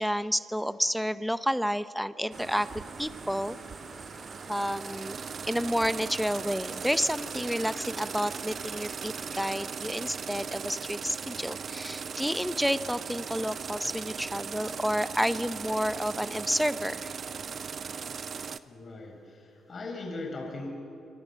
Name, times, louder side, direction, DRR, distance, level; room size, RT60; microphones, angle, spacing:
voice 1, 0.0-3.6 4.5-5.2 5.4-17.2, equal, ahead, 13 dB, 0.8 m, -30 dB
sound 1, 2.3-9.7, right 1 dB, 25° right, 4.9 m, -49 dB
sound 2, 2.3-18.6, right 6 dB, 50° right, 0.8 m, -38 dB
voice 2, 18.4-20.7, left 2 dB, 45° left, 2 dB, 5.1 m, -40 dB
25.5 x 25.5 x 7.0 m, 2.7 s
cardioid pair, 85°, 0 cm